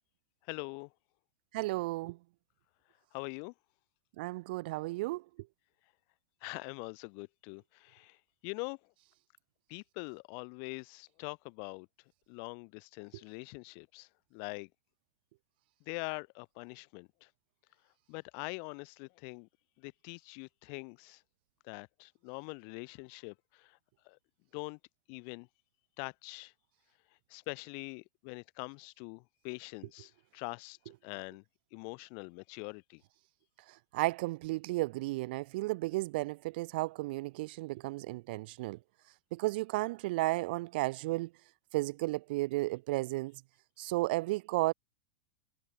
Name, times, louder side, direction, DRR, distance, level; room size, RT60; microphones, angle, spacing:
voice 1, 0.4-0.9 3.1-3.5 6.4-8.9 9.7-11.9 12.3-14.7 15.9-17.3 18.1-19.5 19.8-21.2 21.6-23.8 24.0-24.2 24.5-24.8 25.1-25.5 26.0-26.5 27.3-30.8 31.0-31.4 31.7-33.0, left 40 dB or more, 50° left, 7.8 m, -44 dB
voice 2, 1.5-2.2 4.2-5.2 33.7-38.8 39.3-41.3 41.7-43.4 43.8-44.7, right 20 dB, 60° right, 1.9 m, -33 dB
hypercardioid pair, 100°, 6 cm